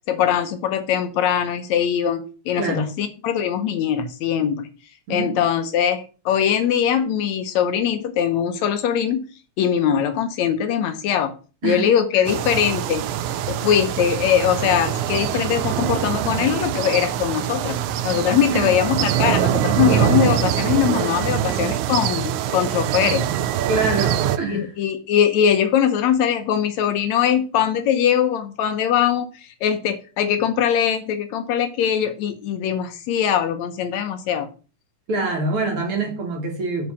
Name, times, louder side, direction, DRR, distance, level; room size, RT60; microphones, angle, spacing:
voice 1, 0.1-4.7 5.1-9.2 9.6-11.3 11.6-13.1 13.5-17.8 18.0-23.3 24.5-34.5, left 9 dB, 70° left, 2.0 m, -21 dB
voice 2, 2.5-2.9 5.1-5.4 11.6-11.8 18.5-18.7 23.7-24.7 35.1-36.9, right 3 dB, 50° right, 2.4 m, -25 dB
sound 1, 12.3-24.4, right 11 dB, 85° right, 2.1 m, -23 dB
7.0 x 4.9 x 6.9 m
omnidirectional pair, 3.5 m